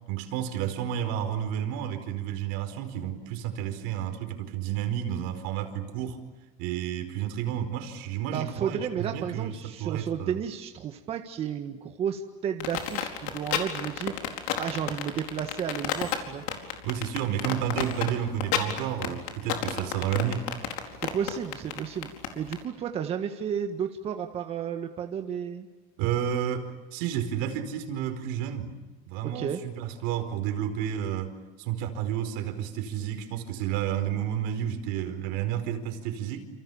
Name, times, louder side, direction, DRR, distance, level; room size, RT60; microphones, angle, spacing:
voice 1, 0.1-6.2 6.6-10.4 16.8-20.4 26.0-28.7 29.0-36.4, right 10 dB, 80° right, 7 dB, 4.7 m, -31 dB
voice 2, 8.3-14.1 14.6-16.4 21.0-25.7 29.2-29.6, right 8 dB, 35° right, 5 dB, 1.7 m, -32 dB
sound 1, 12.6-22.6, left 11 dB, 80° left, 4.5 m, -30 dB
29.5 x 28.5 x 7.2 m, 1.2 s
cardioid pair, 155°, 18 cm